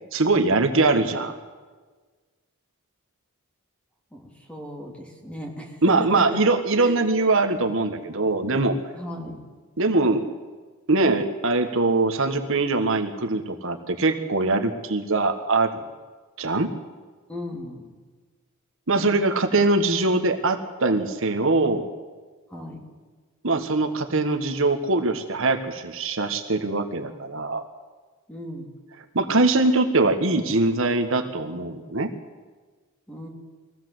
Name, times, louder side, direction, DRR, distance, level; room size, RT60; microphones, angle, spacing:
voice 1, 0.1-1.3 5.8-8.8 9.8-10.3 10.9-15.8 16.4-16.7 18.9-21.8 23.4-27.6 29.1-32.1, right 3 dB, 65° right, 6 dB, 1.4 m, -22 dB
voice 2, 4.1-6.4 6.7-7.0 8.9-9.4 17.3-17.9 22.5-22.8 28.3-28.7 33.1-33.3, left 1 dB, 5° left, 1 dB, 3.1 m, -36 dB
21.5 x 15.5 x 7.9 m, 1.4 s
head